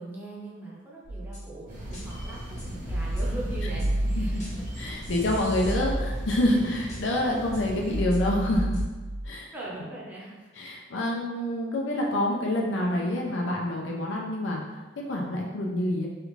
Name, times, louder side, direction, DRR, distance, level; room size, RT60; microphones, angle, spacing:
voice 1, 0.0-4.7 9.5-10.5 10.9-11.0, right 2 dB, 10° right, -6 dB, 0.7 m, -40 dB
sound 1, 1.0-1.5 1.9-2.0 2.6-4.7 5.0-6.6 6.9-7.0 7.5-7.6 7.9-9.3, right 1 dB, 40° left, 0.9 m, -31 dB
sound 2, 1.7-8.0, equal, 50° right, 1.1 m, -38 dB
voice 2, 4.2-8.8 9.2-9.5 10.6-16.1, left 1 dB, 85° left, -1 dB, 0.6 m, -27 dB
3.2 x 2.5 x 3.1 m, 1.2 s
head